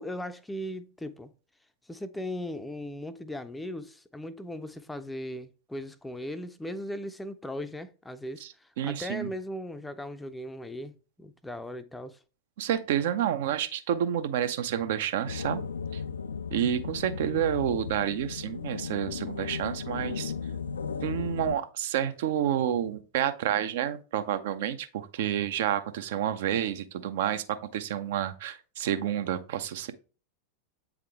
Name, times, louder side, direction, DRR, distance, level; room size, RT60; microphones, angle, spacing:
voice 1, 0.0-1.3 1.9-12.2, left 1 dB, 5° left, 0.5 m, -38 dB
voice 2, 8.8-9.3 12.6-15.6 15.9-16.0 16.5-20.3 21.0-29.9, right 10 dB, 55° right, 0.5 m, -29 dB
sound 1, 15.3-21.6, left 6 dB, 70° left, 0.3 m, -35 dB
8.1 x 3.6 x 3.4 m
figure-of-eight pair, 90°, 0 cm